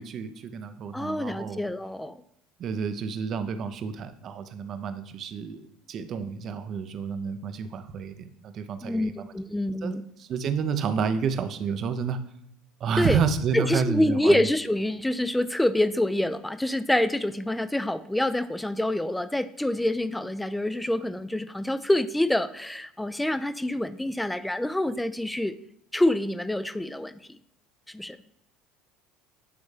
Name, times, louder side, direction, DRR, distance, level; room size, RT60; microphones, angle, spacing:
voice 1, 0.0-1.6 2.6-9.3 9.8-9.9 10.2-12.2 12.8-14.5, right 6 dB, 50° right, 10 dB, 0.6 m, -30 dB
voice 2, 0.9-2.2 8.8-10.0 13.0-13.2 13.5-25.5 25.9-27.2 27.9-28.2, left 1 dB, 5° left, 14 dB, 0.4 m, -26 dB
8.5 x 3.5 x 3.2 m, 0.75 s
hypercardioid pair, 80°, 0 cm